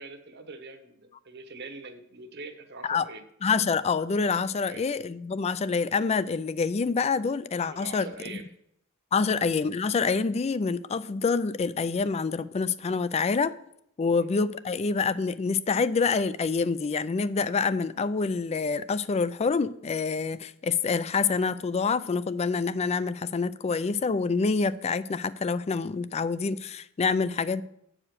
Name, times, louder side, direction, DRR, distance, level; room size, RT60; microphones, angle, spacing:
voice 1, 0.0-3.2 4.6-4.8 7.6-8.5 14.1-14.3, right 3 dB, 55° right, 1.1 m, -43 dB
voice 2, 3.4-8.1 9.1-13.6 14.0-27.6, left 4 dB, 30° left, 0.3 m, -27 dB
8.5 x 4.9 x 6.4 m
head